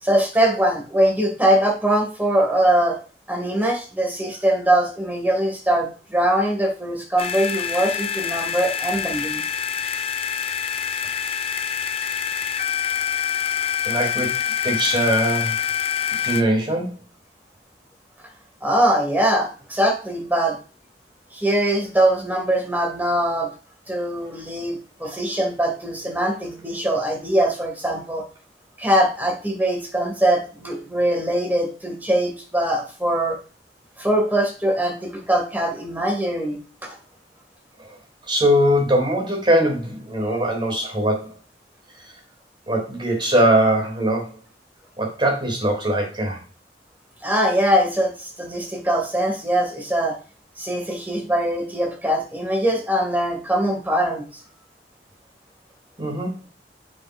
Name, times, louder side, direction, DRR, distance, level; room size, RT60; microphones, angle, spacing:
voice 1, 0.0-3.0 3.3-9.4 18.6-20.6 21.3-23.5 23.9-28.3 28.8-33.4 34.0-37.0 47.2-50.2 50.6-54.2, right 1 dB, 10° right, 2 dB, 2.2 m, -22 dB
sound 1, 7.2-16.4, left 8 dB, 35° left, 0.5 m, -26 dB
voice 2, 13.8-14.3 14.6-15.6 16.2-17.0 37.8-37.9 38.3-41.3 42.7-44.3 45.0-46.4 56.0-56.3, right 1 dB, 30° right, 0 dB, 2.8 m, -21 dB
7.4 x 6.1 x 2.6 m, 0.35 s
head